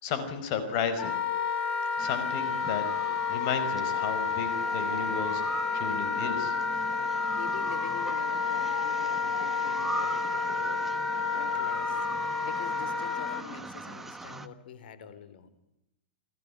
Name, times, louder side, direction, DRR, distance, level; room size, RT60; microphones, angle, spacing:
voice 1, 0.0-1.2 2.0-6.5, left 6 dB, 40° left, 10 dB, 4.9 m, -33 dB
Wind instrument woodwind instrument, 1.0-13.4, left 5 dB, 25° left, 3.5 m, -30 dB
sound 1, 2.0-14.5, right 3 dB, 5° right, 1.3 m, -41 dB
voice 2, 7.4-12.0 12.4-15.5, left 8 dB, 70° left, 14 dB, 4.0 m, -45 dB
30.0 x 19.0 x 9.9 m, 0.87 s
supercardioid pair, 160°, 5 cm